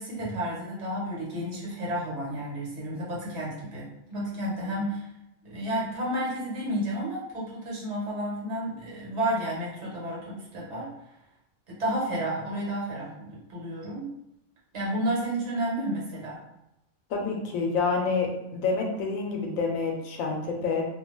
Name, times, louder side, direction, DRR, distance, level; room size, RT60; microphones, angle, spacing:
voice 1, 0.0-5.1 5.4-10.9 11.7-14.1 14.7-16.4, right 1 dB, 60° right, -5 dB, 1.2 m, -31 dB
voice 2, 17.1-20.9, left 4 dB, 85° left, 1 dB, 1.0 m, -28 dB
2.4 x 2.2 x 3.0 m, 0.86 s
omnidirectional pair, 1.4 m